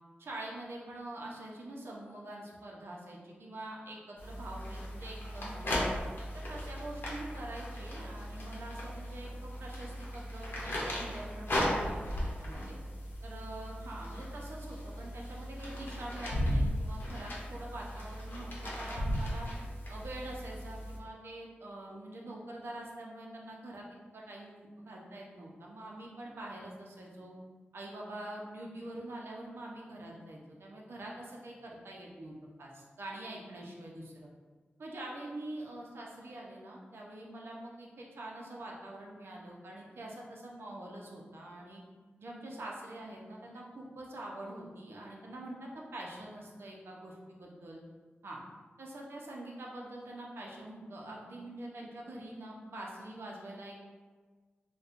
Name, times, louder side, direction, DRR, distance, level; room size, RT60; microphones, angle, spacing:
voice 1, 0.2-5.9 6.3-12.0 12.4-12.8 13.2-19.5 19.9-23.9 24.1-27.3 27.7-34.3 34.8-41.8 42.2-47.8 48.2-48.4 48.8-53.8, right 1 dB, 75° right, -2 dB, 0.6 m, -45 dB
sound 1, 4.2-21.0, equal, 60° left, 0.8 m, -37 dB
4.1 x 2.2 x 2.5 m, 1.4 s
wide cardioid pair, 75°, 4 cm